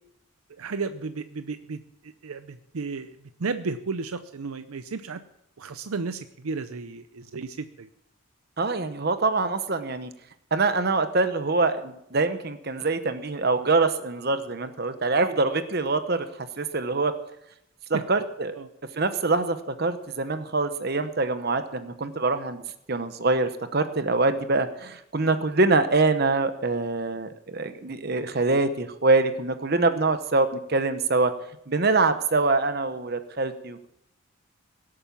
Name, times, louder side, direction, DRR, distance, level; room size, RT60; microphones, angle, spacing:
voice 1, 0.6-5.2 5.6-7.9 17.9-18.0 18.6-18.7, right 4 dB, 85° right, 10 dB, 0.6 m, -33 dB
voice 2, 8.6-10.1 10.5-16.3 16.6-17.1 17.9-18.5 19.0-22.6 22.9-31.3 31.7-33.9, right 3 dB, 45° right, 10 dB, 0.9 m, -24 dB
17.5 x 8.7 x 7.1 m, 0.79 s
head